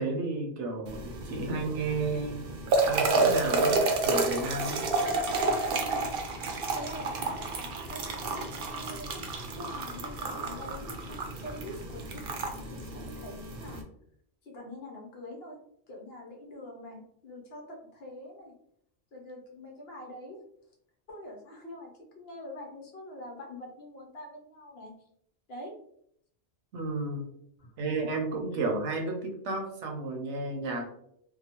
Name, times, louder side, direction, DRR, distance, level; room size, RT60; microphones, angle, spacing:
voice 1, 0.0-2.5 2.8-3.8 4.0-4.8 26.7-27.2 27.8-30.9, right 3 dB, 85° right, 3 dB, 1.0 m, -32 dB
sound 1, 0.9-13.8, right 3 dB, 60° right, 0.7 m, -30 dB
voice 2, 6.7-9.2 9.5-13.8 14.4-15.6 15.9-18.5 19.1-20.4 21.1-24.9 25.5-25.7 27.6-27.7 28.5-28.6, left 1 dB, 65° left, 0 dB, 1.0 m, -45 dB
2.8 x 2.1 x 2.9 m, 0.70 s
omnidirectional pair, 1.2 m